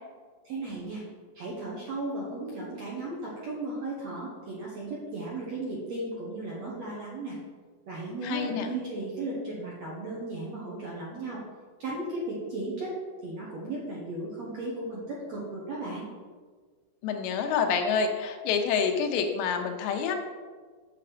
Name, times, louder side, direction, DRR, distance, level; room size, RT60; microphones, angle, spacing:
voice 1, 0.4-1.0 1.4-7.4 7.9-11.4 11.8-12.9 13.2-16.1, right 2 dB, 60° right, -5 dB, 1.8 m, -35 dB
voice 2, 8.2-8.7 17.0-20.2, left 6 dB, 85° left, 5 dB, 3.1 m, -27 dB
8.4 x 6.8 x 5.0 m, 1.5 s
omnidirectional pair, 5.0 m